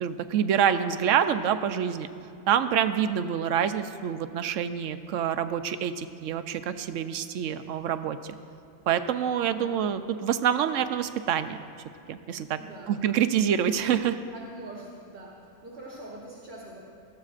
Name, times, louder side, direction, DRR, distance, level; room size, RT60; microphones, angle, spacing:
voice 1, 0.0-2.1 2.5-8.2 8.9-11.6 12.1-12.6 12.9-14.2, right 9 dB, 85° right, 10 dB, 0.9 m, -26 dB
voice 2, 9.5-9.8 12.6-13.0 14.3-15.3 15.6-16.8, right 1 dB, 50° right, -5 dB, 1.7 m, -43 dB
20.0 x 14.0 x 2.5 m, 2.5 s
omnidirectional pair, 1.3 m